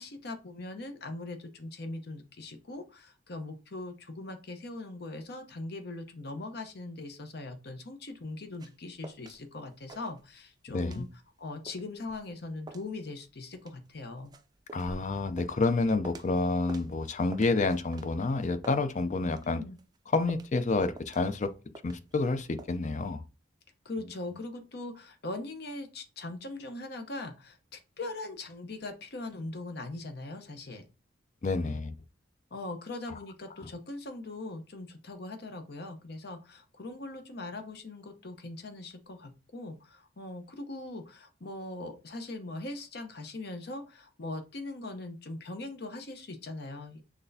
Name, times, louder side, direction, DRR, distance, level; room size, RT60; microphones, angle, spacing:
voice 1, 0.0-11.1 11.4-14.3 19.4-19.8 23.8-30.9 31.6-31.8 32.5-47.0, left 2 dB, 60° left, 0.8 m, -41 dB
sound 1, 8.1-9.4 9.7-10.5 10.8-16.4 16.7-19.5 19.8-22.3 22.6-22.8, right 2 dB, 20° right, 0.4 m, -49 dB
voice 2, 10.7-11.0 14.7-19.6 20.1-21.5 21.8-23.2 31.4-31.9 33.1-33.2 33.6-33.7, left 3 dB, 40° left, 0.5 m, -29 dB
6.0 x 3.3 x 2.7 m
head